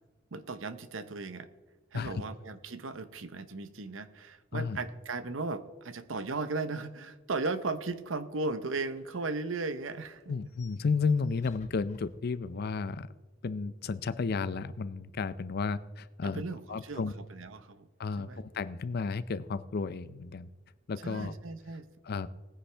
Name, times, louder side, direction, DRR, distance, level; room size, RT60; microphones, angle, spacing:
voice 1, 0.3-1.5 1.9-10.2 16.2-17.9 18.2-18.4 21.0-21.9, right 3 dB, 80° right, 0.9 m, -36 dB
sound 1, 8.0-12.7, left 2 dB, 35° left, 1.3 m, -61 dB
voice 2, 10.3-13.1 13.4-16.4 16.7-17.1 18.0-20.5 20.9-21.4 22.0-22.3, left 4 dB, 55° left, 0.5 m, -32 dB
19.5 x 9.9 x 3.4 m
head